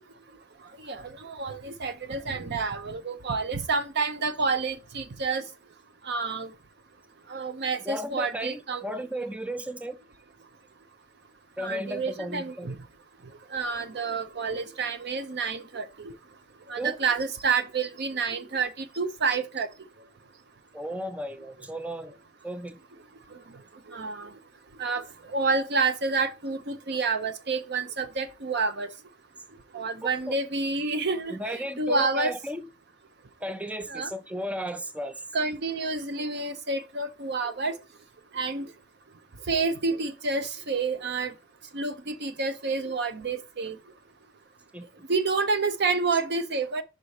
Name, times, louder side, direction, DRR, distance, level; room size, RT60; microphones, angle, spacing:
voice 1, 0.9-5.4 6.1-6.5 7.3-9.0 11.6-12.8 13.5-16.1 16.7-19.7 23.9-24.3 24.8-25.0 25.3-28.9 29.7-32.3 33.9-34.1 35.3-37.8 38.3-38.7 39.5-41.3 41.7-43.8 45.1-46.8, right 4 dB, 60° right, 0.7 m, -29 dB
voice 2, 7.8-10.0 11.6-12.7 16.8-17.0 20.7-22.1 22.4-22.8 30.0-30.3 31.3-32.7 33.4-35.2 44.7-44.9, equal, 5° right, 0.4 m, -34 dB
5.4 x 4.1 x 4.8 m
head